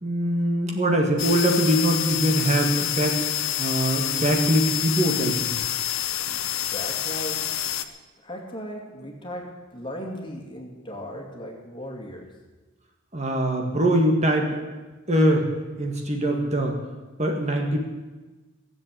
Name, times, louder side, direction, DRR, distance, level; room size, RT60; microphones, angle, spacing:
voice 1, 0.0-5.5 13.1-14.6 15.1-15.5 15.8-16.8 17.2-17.8, right 1 dB, 30° right, 2 dB, 1.8 m, -23 dB
sound 1, 1.2-7.8, left 11 dB, 70° left, 0.8 m, -27 dB
voice 2, 6.3-7.5 8.2-12.3, equal, 20° left, 1 dB, 2.4 m, -37 dB
17.0 x 7.6 x 8.7 m, 1.2 s
head